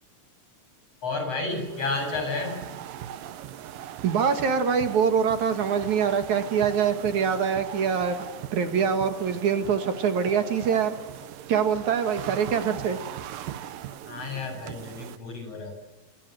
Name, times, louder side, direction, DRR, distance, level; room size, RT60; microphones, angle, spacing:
voice 1, 1.0-2.7 14.1-15.7, left 3 dB, 45° left, 4 dB, 9.0 m, -31 dB
sound 1, 1.5-15.2, right 11 dB, 85° right, 2.8 m, -40 dB
voice 2, 4.0-8.2 8.5-10.9 11.5-13.0, right 7 dB, 65° right, 8 dB, 3.0 m, -24 dB
26.5 x 26.0 x 7.9 m, 1.0 s
omnidirectional pair, 3.8 m